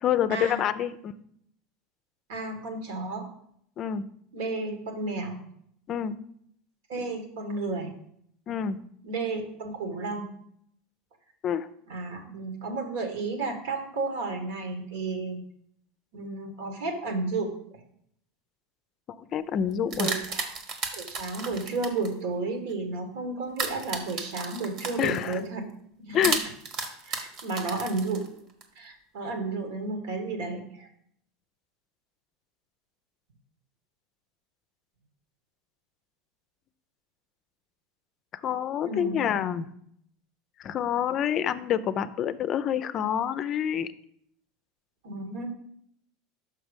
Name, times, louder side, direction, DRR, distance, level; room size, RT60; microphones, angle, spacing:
voice 1, 0.0-1.1 3.8-4.0 5.9-6.2 8.5-8.8 11.4-11.7 19.1-20.1 25.0-25.4 26.1-26.4 38.4-39.7 40.6-43.9, left 9 dB, 45° left, 13 dB, 0.4 m, -27 dB
voice 2, 2.3-3.3 4.3-5.4 6.9-7.9 9.0-10.3 11.9-15.4 16.1-17.5 20.0-20.5 20.9-25.7 26.1-26.3 27.0-28.3 28.7-30.9 38.8-39.5 45.0-45.5, right 3 dB, 75° right, 5 dB, 1.6 m, -32 dB
sound 1, 19.6-22.1 23.6-25.4 26.2-28.6, right 4 dB, 50° right, 1.3 m, -33 dB
6.1 x 5.6 x 5.2 m, 0.69 s
hypercardioid pair, 90°, 0 cm